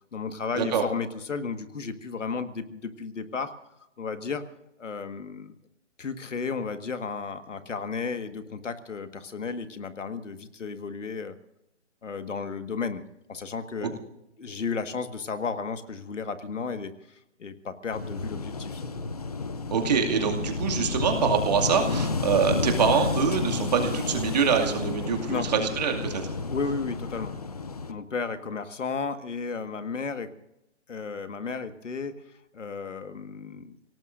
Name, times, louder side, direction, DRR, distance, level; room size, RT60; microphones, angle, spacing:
voice 1, 0.1-3.5 4.0-4.4 4.8-5.6 6.0-11.4 12.0-13.0 13.3-14.0 14.4-18.9 25.3-25.5 26.5-27.3 27.9-30.3 30.9-32.1 32.5-33.8, left 5 dB, 85° left, 9 dB, 1.8 m, -33 dB
Wind / Waves surf, 17.9-27.9, left 4 dB, 35° left, 0.6 m, -31 dB
voice 2, 19.7-26.3, right 6 dB, 35° right, 3 dB, 2.4 m, -25 dB
29.5 x 18.0 x 2.6 m, 0.85 s
hypercardioid pair, 170°, 36 cm